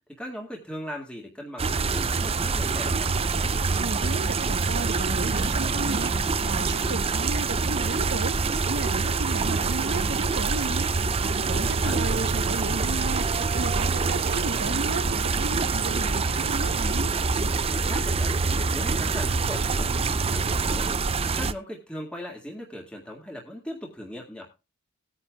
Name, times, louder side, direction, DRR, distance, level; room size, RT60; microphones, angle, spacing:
voice 1, 0.1-3.1 11.5-12.0 17.6-18.4 18.7-24.5, equal, 5° left, 1.9 m, -39 dB
sound 1, 1.6-21.5, right 4 dB, 30° right, 0.5 m, -25 dB
voice 2, 3.8-6.1 6.4-8.3 8.7-13.2 13.5-17.1, right 2 dB, 55° right, 1.0 m, -34 dB
19.0 x 9.8 x 2.3 m
head